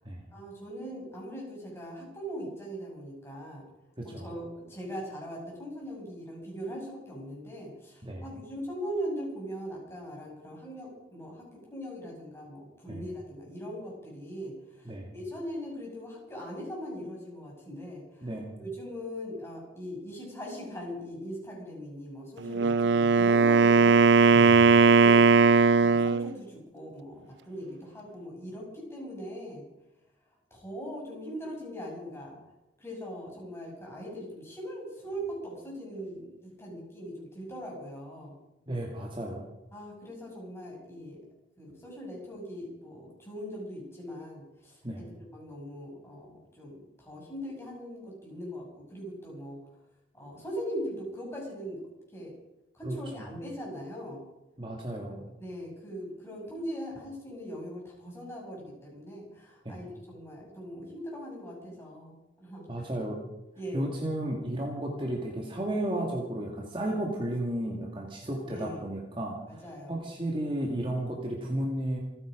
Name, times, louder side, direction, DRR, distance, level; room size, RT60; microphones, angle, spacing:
voice 1, 0.3-3.6 4.0-18.3 18.6-24.1 24.7-29.6 30.5-32.4 32.8-38.4 39.7-41.2 41.6-49.6 50.1-51.9 52.1-52.3 52.7-54.2 55.2-62.9 63.6-63.9 68.4-68.8 69.5-70.1, equal, 15° left, -3 dB, 6.8 m, -40 dB
voice 2, 18.2-18.5 24.3-24.7 38.7-39.5 44.8-45.0 52.8-53.0 54.6-55.2 59.6-59.8 62.7-63.2 63.7-69.6 69.9-72.0, right 1 dB, 25° right, 0 dB, 2.3 m, -33 dB
Wind instrument woodwind instrument, 22.4-26.3, right 4 dB, 65° right, 0.4 m, -19 dB
27.5 x 10.0 x 5.2 m, 0.93 s
head